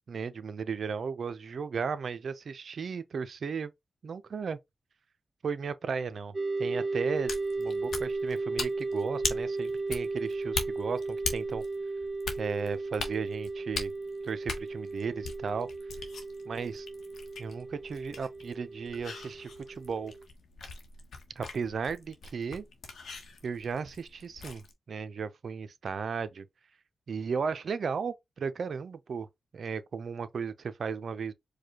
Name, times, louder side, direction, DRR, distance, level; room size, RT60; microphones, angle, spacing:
voice 1, 0.1-3.7 4.0-4.6 5.4-7.3 7.6-11.6 12.4-13.9 14.2-15.7 16.5-16.9 17.4-20.1 21.4-22.7 23.4-26.5 27.1-29.3 29.5-31.3, right 5 dB, 70° right, 0.5 m, -35 dB
sound 1, 6.3-20.2, right 3 dB, 25° right, 1.7 m, -35 dB
sound 2, 7.1-24.7, left 4 dB, 80° left, 1.1 m, -41 dB
4.8 x 2.3 x 2.9 m
cardioid pair, 60°, 0 cm